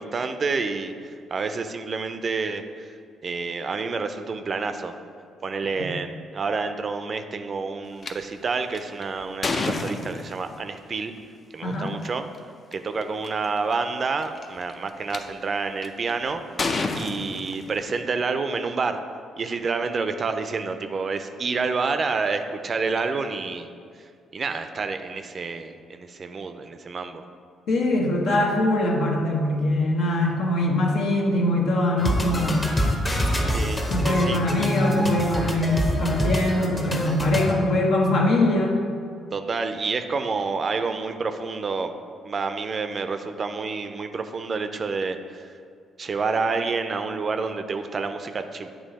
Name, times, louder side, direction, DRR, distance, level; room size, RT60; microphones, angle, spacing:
voice 1, 0.0-2.9 3.2-4.9 5.4-11.1 11.5-12.3 12.7-16.4 16.9-19.0 19.4-23.7 24.3-27.2 33.5-34.4 39.3-41.9 42.2-45.5 46.0-48.8, right 4 dB, 45° right, 8 dB, 0.4 m, -28 dB
sound 1, 8.0-8.1 8.7-10.6 11.9-12.1 12.7-12.8 13.0-13.5 14.2-15.2 15.8-16.1 16.6-18.0, left 3 dB, 45° left, 0.5 m, -29 dB
voice 2, 11.6-11.9 27.7-32.6 33.9-38.8, left 1 dB, 70° left, -1 dB, 1.0 m, -22 dB
sound 2, 32.0-37.5, equal, 25° left, 0.9 m, -25 dB
8.3 x 2.9 x 4.1 m, 2.3 s
supercardioid pair, 60°, 0 cm